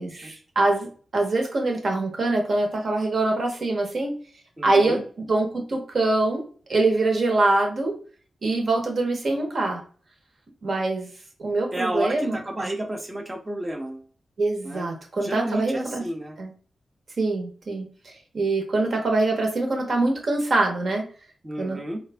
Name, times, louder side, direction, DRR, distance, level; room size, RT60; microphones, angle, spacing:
voice 1, 0.0-4.2 4.6-5.0 5.3-6.4 6.7-7.9 8.4-9.8 10.6-11.1 11.4-12.7 14.4-16.0 16.4-16.5 17.2-21.1 21.6-21.8, right 2 dB, 50° right, 3 dB, 1.2 m, -24 dB
voice 2, 4.6-5.0 11.7-14.1 14.6-14.9 15.2-16.4 21.4-22.0, right 1 dB, 15° right, 3 dB, 0.7 m, -31 dB
4.6 x 2.4 x 3.3 m, 0.41 s
wide cardioid pair, 125°, 0 cm